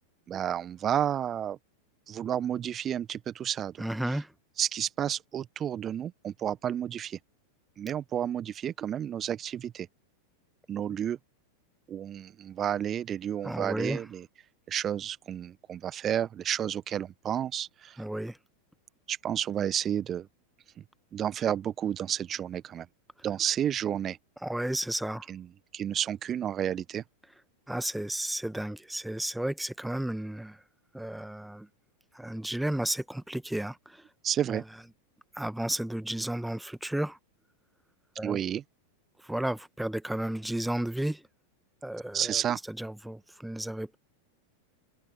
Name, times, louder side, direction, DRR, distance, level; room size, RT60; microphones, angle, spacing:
voice 1, 0.3-1.6 2.1-3.8 4.6-7.2 7.8-9.9 10.7-11.2 11.9-14.2 14.7-18.0 19.1-20.3 21.1-22.9 23.2-24.2 25.3-25.4 25.7-27.0 34.2-34.6 38.2-38.6 42.1-42.6, right 10 dB, 25° right, 1.3 m, -31 dB
voice 2, 3.8-4.3 13.4-14.0 18.0-18.4 24.4-25.3 27.7-30.6 30.9-31.7 32.1-34.0 34.5-34.6 35.3-37.2 38.2-38.4 39.2-41.2 41.8-42.4 42.7-44.0, right 1 dB, 5° right, 1.6 m, -33 dB
open air
figure-of-eight pair, 90°, 0 cm